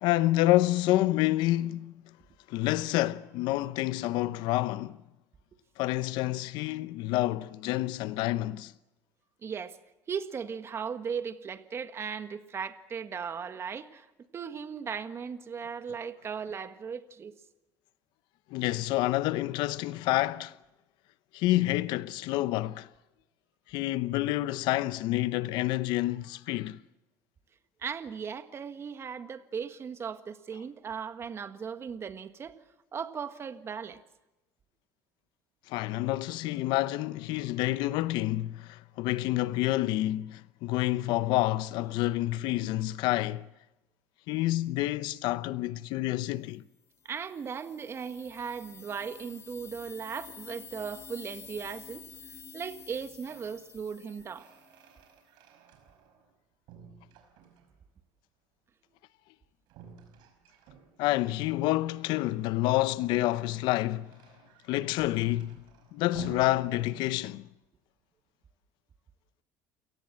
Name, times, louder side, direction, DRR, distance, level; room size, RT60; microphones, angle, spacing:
voice 1, 0.0-1.9 2.5-5.0 5.8-8.7 18.5-20.6 21.3-22.9 23.7-26.8 35.7-43.5 44.3-46.6 61.0-64.1 64.7-65.6 65.9-67.5, left 16 dB, 70° left, 0.8 m, -28 dB
voice 2, 9.4-9.8 10.1-14.1 14.3-17.3 27.8-32.6 32.9-34.0 47.0-52.0 52.5-54.5, right 6 dB, 35° right, 1.6 m, -37 dB
sound 1, 47.0-54.9, left 6 dB, 35° left, 4.6 m, -50 dB
sound 2, 52.9-53.5 53.9-56.4 56.7-57.9 59.7-61.3 63.3-67.5, right 7 dB, 70° right, 5.4 m, -52 dB
29.0 x 18.0 x 7.7 m
supercardioid pair, 110°, 8 cm